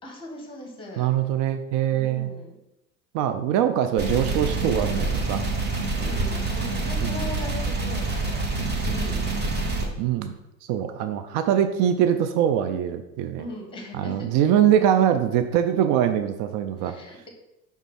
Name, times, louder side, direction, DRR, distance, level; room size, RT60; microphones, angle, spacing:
voice 1, 0.0-1.1 1.9-2.6 6.0-8.4 8.8-9.6 9.8-9.9 13.4-14.3 16.8-17.3, left 1 dB, 10° left, 2 dB, 1.7 m, -39 dB
voice 2, 1.0-2.3 3.1-5.4 7.0-7.1 8.6-8.7 10.0-10.3 10.7-13.4 14.0-16.9, right 10 dB, 45° right, 8 dB, 0.5 m, -23 dB
sound 1, 4.0-9.9, right 3 dB, 20° right, 1.0 m, -26 dB
5.1 x 3.6 x 5.6 m, 0.89 s
hypercardioid pair, 105°, 49 cm